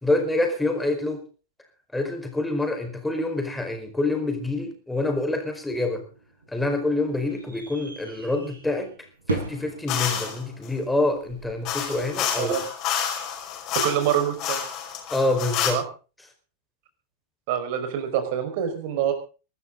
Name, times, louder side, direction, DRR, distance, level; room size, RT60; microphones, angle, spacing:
voice 1, 0.0-1.2 1.9-6.0 6.5-8.9 9.3-12.5 15.1-15.8, left 2 dB, 5° left, 5 dB, 4.8 m, -26 dB
sound 1, 6.0-12.0, right 3 dB, 75° right, 6.1 m, -38 dB
sound 2, 9.9-10.4 11.6-15.7, left 9 dB, 40° left, 5.5 m, -29 dB
voice 2, 13.8-14.6 15.7-15.8 17.5-19.1, right 9 dB, 50° right, 7 dB, 5.0 m, -25 dB
23.5 x 13.0 x 3.9 m, 0.36 s
figure-of-eight pair, 90°, 0 cm